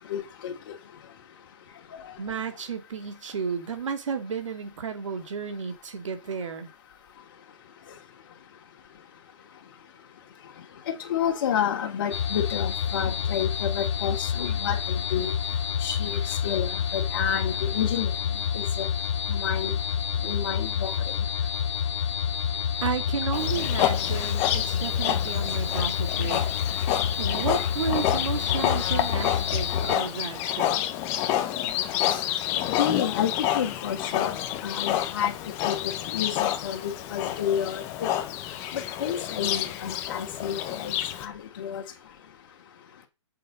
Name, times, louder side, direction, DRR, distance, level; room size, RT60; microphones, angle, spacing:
voice 1, 0.1-0.5 10.9-15.3 15.8-18.1 18.5-18.9 19.3-19.7 20.2-20.9 32.1-32.2 32.8-34.4 34.6-35.3 35.6-35.8 36.1-38.2 38.7-41.8, left 9 dB, 45° left, 2.7 m, -30 dB
voice 2, 2.2-6.7 22.8-26.8 27.2-30.7, right 6 dB, 75° right, 2.6 m, -32 dB
sound 1, 12.1-30.0, left 8 dB, 60° left, 2.2 m, -28 dB
Livestock farm animals working animals, 23.3-41.3, left 12 dB, 15° left, 0.7 m, -29 dB
7.9 x 7.6 x 5.4 m
hypercardioid pair, 175°, 16 cm